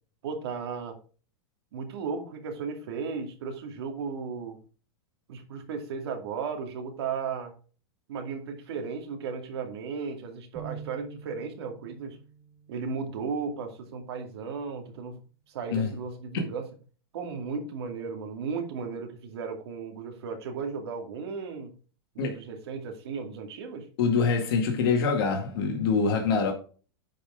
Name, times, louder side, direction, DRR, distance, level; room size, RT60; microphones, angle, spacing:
voice 1, 0.2-1.0 1.7-4.6 5.3-7.5 8.1-12.2 12.7-15.2 15.5-16.7 17.1-21.7 22.1-23.9, right 5 dB, 75° right, 2.3 m, -35 dB
sound 1, 10.6-14.1, right 7 dB, 20° right, 1.5 m, -47 dB
voice 2, 24.0-26.5, left 5 dB, 60° left, 2.1 m, -25 dB
10.0 x 5.2 x 3.7 m
supercardioid pair, 150°, 14 cm